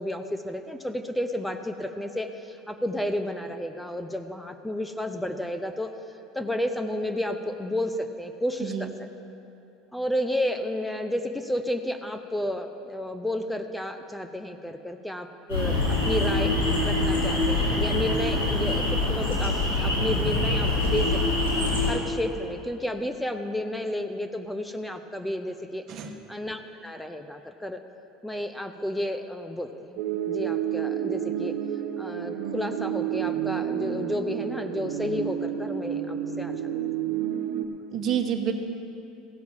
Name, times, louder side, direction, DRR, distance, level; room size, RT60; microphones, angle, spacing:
voice 1, 0.0-5.9 6.3-8.9 9.9-16.5 16.8-21.5 21.9-25.8 26.3-27.8 28.2-31.6 32.0-36.5, left 1 dB, 5° left, 7 dB, 0.7 m, -31 dB
voice 2, 8.6-8.9 25.9-26.1 37.9-38.5, right 9 dB, 50° right, 6 dB, 1.1 m, -28 dB
sound 1, 15.5-21.9, left 2 dB, 90° left, 3.4 m, -24 dB
sound 2, 30.0-37.7, right 9 dB, 70° right, 0.8 m, -30 dB
16.0 x 5.8 x 7.3 m, 2.8 s
hypercardioid pair, 85°, 0 cm